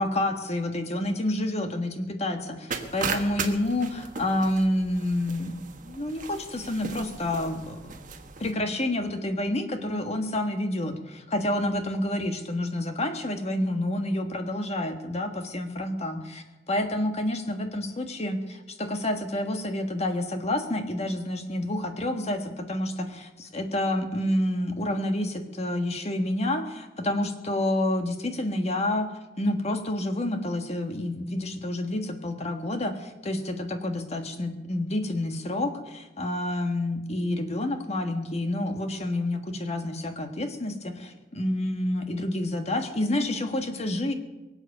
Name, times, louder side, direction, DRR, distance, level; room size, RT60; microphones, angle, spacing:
voice 1, 0.0-5.5 5.8-7.9 8.4-29.1 29.4-44.1, left 1 dB, 35° left, 5 dB, 1.5 m, -29 dB
sound 1, 2.7-8.5, right 5 dB, 45° right, 1.3 m, -37 dB
23.0 x 8.1 x 6.7 m, 1.1 s
head